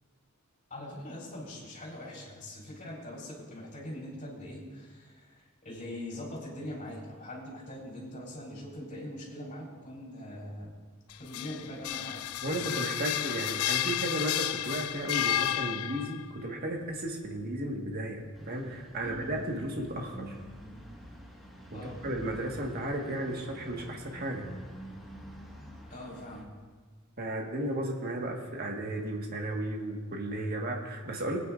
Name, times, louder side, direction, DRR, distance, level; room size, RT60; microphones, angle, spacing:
voice 1, 0.7-10.7 11.2-12.7 15.1-15.4 19.0-19.4 21.7-22.0 25.9-26.5, left 1 dB, 40° left, -4 dB, 4.4 m, -42 dB
sound 1, 11.1-16.3, left 12 dB, 85° left, 0.3 m, -32 dB
voice 2, 12.4-20.3 21.7-24.5 27.2-31.4, right 1 dB, 45° right, 0 dB, 1.6 m, -34 dB
sound 2, 18.3-26.4, right 1 dB, ahead, 1.6 m, -47 dB
22.5 x 9.5 x 2.5 m, 1.4 s
head